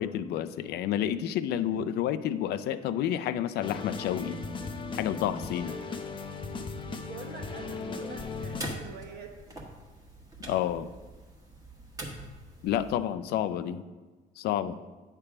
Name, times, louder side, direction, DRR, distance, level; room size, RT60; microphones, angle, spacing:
voice 1, 0.0-4.4 4.9-5.8 10.5-10.9 12.6-13.8 14.4-14.8, left 10 dB, 70° left, 12 dB, 0.4 m, -30 dB
sound 1, 3.6-8.7, left 4 dB, 30° left, 0.6 m, -37 dB
voice 2, 5.6-6.2 6.7-9.3, right 4 dB, 70° right, 2 dB, 1.2 m, -45 dB
sound 2, 8.2-13.0, right 1 dB, 20° right, 1.3 m, -44 dB
8.4 x 3.3 x 5.9 m, 1.3 s
cardioid pair, 110°, 17 cm